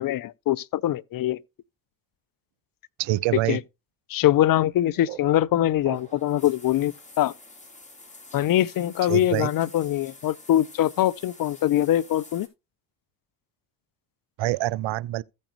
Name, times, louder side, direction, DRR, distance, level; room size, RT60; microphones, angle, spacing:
voice 1, 0.0-1.4 3.5-3.6 4.1-7.3 8.3-12.5, left 13 dB, 45° left, 0.5 m, -23 dB
voice 2, 3.0-3.6 9.1-9.5 14.4-15.2, right 16 dB, 65° right, 0.6 m, -25 dB
sound 1, 4.6-6.5, right 13 dB, 80° right, 1.2 m, -43 dB
sound 2, 5.8-12.5, left 2 dB, 15° left, 3.1 m, -48 dB
15.0 x 5.2 x 3.0 m
hypercardioid pair, 60°, 50 cm